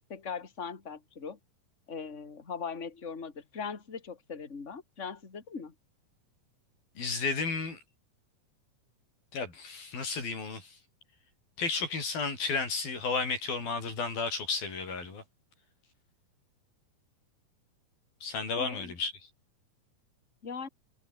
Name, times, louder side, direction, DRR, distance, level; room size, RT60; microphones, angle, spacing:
voice 1, 0.1-1.4 1.9-5.7 18.5-18.9 20.4-20.7, left 6 dB, 20° left, 2.9 m, -40 dB
voice 2, 7.0-7.8 9.3-10.8 11.6-15.2 18.2-19.3, left 4 dB, 90° left, 8.9 m, -33 dB
omnidirectional pair, 4.1 m